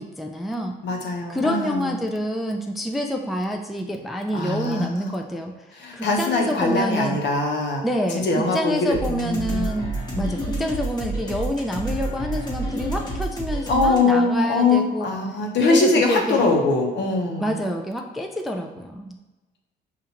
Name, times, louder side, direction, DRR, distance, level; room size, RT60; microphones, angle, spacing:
voice 1, 0.0-0.8 1.3-5.7 5.9-7.2 7.8-15.1 15.6-16.4 17.4-19.2, equal, ahead, 2 dB, 0.4 m, -27 dB
voice 2, 0.8-2.0 4.3-5.1 5.7-7.8 8.1-9.7 10.1-10.4 13.7-17.6, left 3 dB, 65° left, 1 dB, 0.9 m, -22 dB
sound 1, 8.9-14.0, right 2 dB, 20° left, 1.1 m, -29 dB
5.6 x 2.5 x 2.9 m, 1.1 s
cardioid pair, 90°, 20 cm